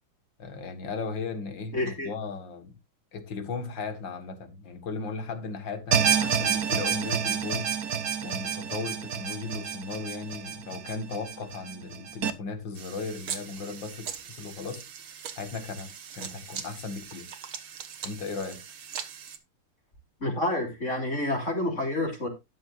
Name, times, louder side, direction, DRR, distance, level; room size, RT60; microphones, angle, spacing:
voice 1, 0.4-2.8 3.1-7.7 8.2-14.8 15.4-17.3 18.0-18.6, left 4 dB, 65° left, 2.3 m, -36 dB
voice 2, 1.7-2.1 20.2-22.3, left 1 dB, 35° left, 3.6 m, -28 dB
sound 1, 5.9-12.3, right 8 dB, 55° right, 1.3 m, -28 dB
sound 2, 12.7-19.4, right 8 dB, 80° right, 2.2 m, -41 dB
13.0 x 9.4 x 2.5 m
omnidirectional pair, 2.2 m